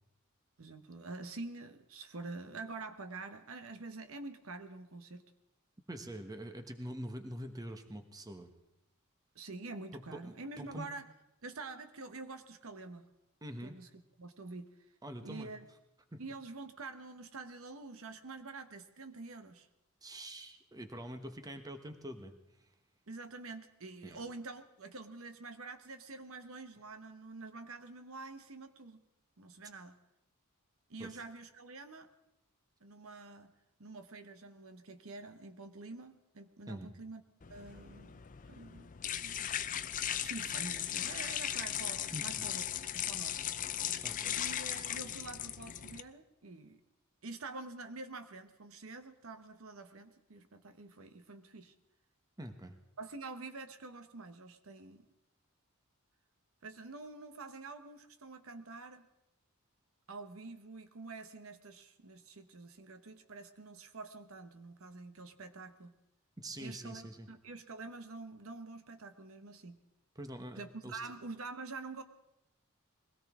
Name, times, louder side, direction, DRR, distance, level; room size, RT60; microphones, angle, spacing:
voice 1, 0.6-5.3 9.3-11.1 11.4-13.1 13.6-13.9 14.2-14.7 15.2-15.7 16.2-19.7 23.1-29.0 29.4-30.0 30.9-32.1 32.8-33.5 33.8-37.2 37.5-38.9 39.2-39.5 40.2-42.6 42.9-43.4 44.3-46.8 47.2-51.7 53.0-55.0 56.6-59.1 60.1-66.0 66.6-69.8 70.6-72.0, right 3 dB, 65° right, 9 dB, 1.0 m, -47 dB
voice 2, 5.9-8.5 9.9-10.9 13.4-13.7 15.0-15.5 16.1-16.2 20.0-22.3 24.0-24.2 31.0-31.2 36.7-36.9 42.1-42.5 43.2-43.3 44.0-44.4 52.4-52.8 66.4-67.3 70.1-71.0, right 1 dB, 15° right, 7 dB, 1.1 m, -45 dB
sound 1, 37.4-46.0, left 10 dB, 35° left, 0.5 m, -37 dB
22.0 x 17.0 x 3.6 m, 0.87 s
head